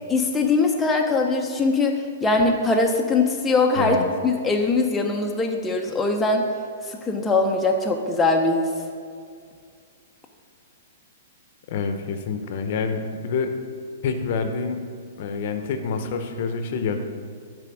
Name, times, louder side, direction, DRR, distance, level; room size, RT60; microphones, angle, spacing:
voice 1, 0.1-4.0 4.2-6.5 6.9-8.7, left 3 dB, 10° left, 1 dB, 0.4 m, -21 dB
voice 2, 11.7-13.5 14.0-14.8 15.2-17.0, left 5 dB, 55° left, 7 dB, 0.6 m, -27 dB
6.8 x 3.4 x 6.0 m, 2.2 s
hypercardioid pair, 150°, 0 cm